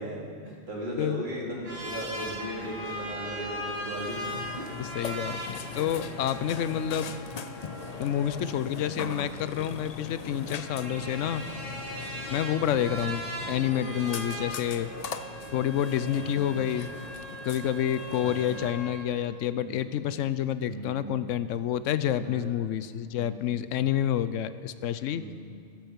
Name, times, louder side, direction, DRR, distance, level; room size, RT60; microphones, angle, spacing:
voice 1, 0.0-4.3 4.6-4.7 5.8-5.9 6.8-7.1 8.7-9.1 11.2-11.3 12.7-13.0 16.2-16.4 18.2-18.5 19.5-19.9 20.6-21.0 22.2-22.5 23.1-23.4 25.1-25.3, equal, 40° right, -4 dB, 3.0 m, -38 dB
sound 1, 1.6-18.9, equal, 85° right, 3.9 m, -39 dB
Burping eructation, 4.3-18.7, left 6 dB, 50° left, 0.4 m, -41 dB
voice 2, 4.8-7.1 8.0-11.4 12.3-14.9 15.5-16.9 17.4-25.2, left 10 dB, 90° left, 14 dB, 1.0 m, -29 dB
14.0 x 13.5 x 5.2 m, 2.3 s
omnidirectional pair, 1.3 m